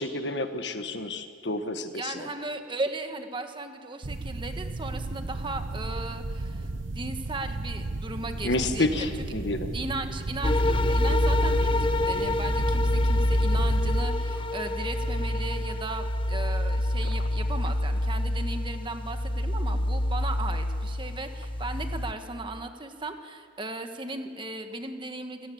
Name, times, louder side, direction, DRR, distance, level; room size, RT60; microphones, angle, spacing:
voice 1, 0.0-2.1 8.4-9.7, left 2 dB, 60° left, 8 dB, 1.5 m, -29 dB
voice 2, 1.9-9.1 9.7-25.5, right 2 dB, 25° right, 6 dB, 1.5 m, -36 dB
sound 1, 4.0-14.0, right 2 dB, 75° right, 0.9 m, -35 dB
sound 2, 10.4-22.1, left 1 dB, 25° left, 0.9 m, -26 dB
28.5 x 17.5 x 8.6 m, 2.3 s
head